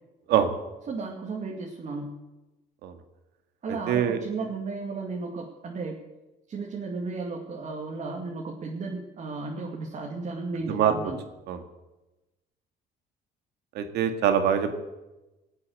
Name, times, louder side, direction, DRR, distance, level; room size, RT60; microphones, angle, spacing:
voice 1, 0.9-2.2 3.6-6.0 6.5-11.2, right 3 dB, 45° right, -1 dB, 2.5 m, -34 dB
voice 2, 3.7-4.2 10.7-10.9 11.5-11.6 13.7-14.8, right 9 dB, 80° right, 7 dB, 2.0 m, -24 dB
20.0 x 8.5 x 8.0 m, 1.1 s
cardioid pair, 110°, 17 cm